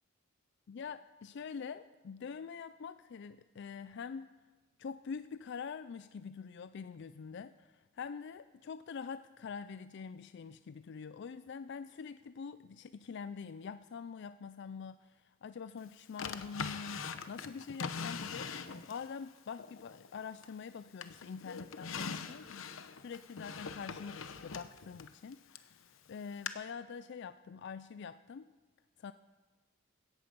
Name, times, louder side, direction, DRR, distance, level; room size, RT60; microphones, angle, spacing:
voice 1, 0.7-4.3 4.8-22.7 23.0-28.5 29.0-29.1, left 6 dB, 60° left, 13 dB, 0.4 m, -45 dB
Drawer open or close, 16.2-19.1 19.6-20.6 21.0-25.7 26.5-26.6, left 5 dB, 80° left, 0.9 m, -42 dB
17.0 x 14.5 x 5.3 m, 1.3 s
head